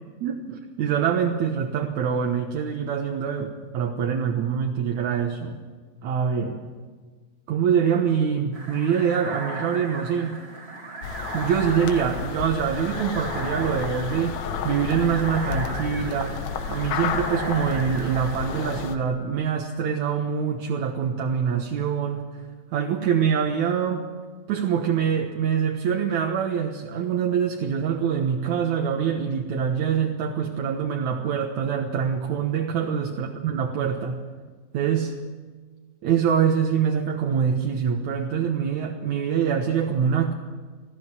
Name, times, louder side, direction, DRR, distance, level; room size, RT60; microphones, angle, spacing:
voice 1, 0.2-5.6 6.0-6.6 7.5-10.4 11.3-16.4 16.7-22.2 22.7-24.1 24.5-34.2 34.7-35.1 36.0-40.3, right 7 dB, 75° right, 2 dB, 2.6 m, -24 dB
sound 1, 8.5-18.9, right 2 dB, 25° right, 1.9 m, -37 dB
sound 2, 11.0-19.0, left 7 dB, 75° left, 2.3 m, -31 dB
20.0 x 14.5 x 9.6 m, 1.5 s
omnidirectional pair, 3.4 m